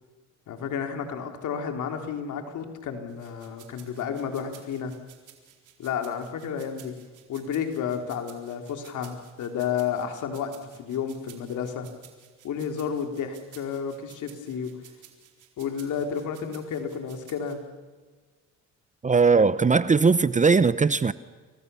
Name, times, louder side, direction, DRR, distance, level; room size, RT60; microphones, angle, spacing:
voice 1, 0.5-4.9 5.8-6.9 7.3-11.9 12.4-14.7 15.6-17.6, left 7 dB, 80° left, 5 dB, 3.6 m, -31 dB
sound 1, 3.1-17.5, right 11 dB, 85° right, 4.2 m, -53 dB
voice 2, 19.0-21.1, right 4 dB, 25° right, 15 dB, 0.8 m, -19 dB
29.5 x 24.0 x 7.0 m, 1.4 s
cardioid pair, 90°, 30 cm